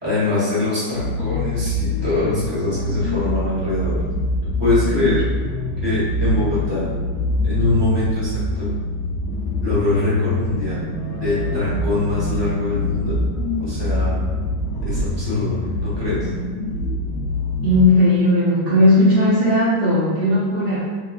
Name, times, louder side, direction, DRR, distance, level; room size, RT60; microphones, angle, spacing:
voice 1, 0.0-4.0 4.6-5.2 5.8-6.9 7.4-8.7 9.6-10.8 11.2-13.2 13.6-14.2 14.8-16.3, left 2 dB, 20° right, -10 dB, 0.8 m, -23 dB
sound 1, 0.9-17.8, left 1 dB, 65° left, 0.9 m, -24 dB
voice 2, 17.6-20.8, left 1 dB, 70° right, -12 dB, 0.5 m, -16 dB
3.3 x 3.2 x 2.3 m, 1.5 s
omnidirectional pair, 2.3 m